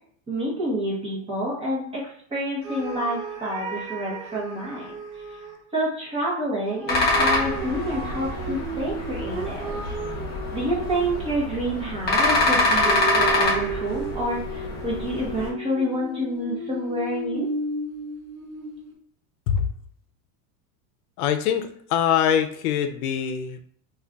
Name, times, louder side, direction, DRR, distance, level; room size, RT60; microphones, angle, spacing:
voice 1, 0.3-5.2 5.7-9.8 10.5-17.5, equal, 15° right, -4 dB, 0.8 m, -28 dB
sound 1, 2.6-5.6 6.6-11.4 12.8-18.9, right 3 dB, 65° right, 1.0 m, -34 dB
sound 2, 6.9-15.5, left 2 dB, 20° left, 0.7 m, -25 dB
voice 2, 21.2-23.6, left 8 dB, 85° left, 9 dB, 0.6 m, -23 dB
2.6 x 2.3 x 3.3 m, 0.63 s
supercardioid pair, 150°, 43 cm